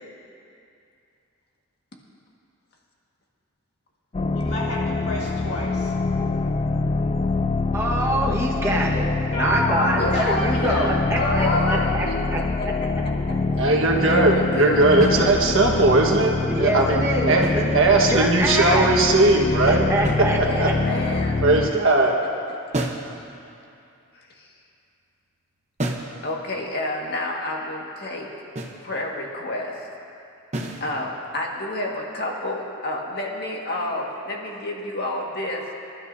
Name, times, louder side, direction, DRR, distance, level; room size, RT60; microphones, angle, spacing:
sound 1, 4.1-21.7, left 3 dB, 25° left, 0.3 m, -25 dB
voice 1, 4.3-5.9 8.9-9.0 9.3-12.2, left 1 dB, 85° left, -6 dB, 3.5 m, -28 dB
voice 2, 7.7-12.4 16.5-17.7 18.1-18.9 19.6-20.7, right 1 dB, 10° right, -3 dB, 1.4 m, -26 dB
voice 3, 10.0-11.9 12.8-12.9 14.0-15.1 20.4-21.4 24.1-24.5 26.2-28.3 28.8-29.9 30.8-35.6, left 2 dB, 50° left, -1 dB, 1.8 m, -29 dB
voice 4, 13.6-17.4 17.7-19.8 20.4-20.7 21.4-22.1, right 2 dB, 60° right, 0 dB, 1.5 m, -19 dB
sound 2, 15.0-15.8 17.2-18.3 20.0-20.8 22.7-23.2 25.8-26.2 28.6-28.9 30.5-30.9, right 1 dB, 30° right, 0.9 m, -31 dB
26.0 x 12.0 x 2.7 m, 2.6 s
head